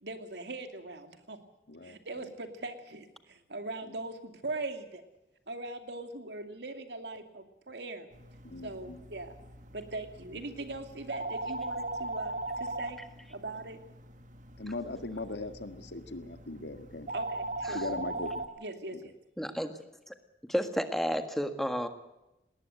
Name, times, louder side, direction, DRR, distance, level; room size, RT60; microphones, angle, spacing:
voice 1, 0.0-1.4 1.8-5.0 5.5-8.1 8.6-13.0 13.3-13.8 17.1-17.8 18.6-19.1, right 2 dB, 75° right, 7 dB, 2.6 m, -40 dB
voice 2, 1.7-2.3 8.4-9.0 14.6-17.1 17.7-18.4, left 2 dB, 80° left, 9 dB, 1.8 m, -39 dB
sound 1, 8.1-18.5, right 2 dB, 45° right, 1.7 m, -40 dB
voice 3, 19.4-19.8 20.1-20.2 20.5-21.9, equal, ahead, 8 dB, 1.6 m, -31 dB
19.5 x 19.0 x 7.9 m, 0.94 s
head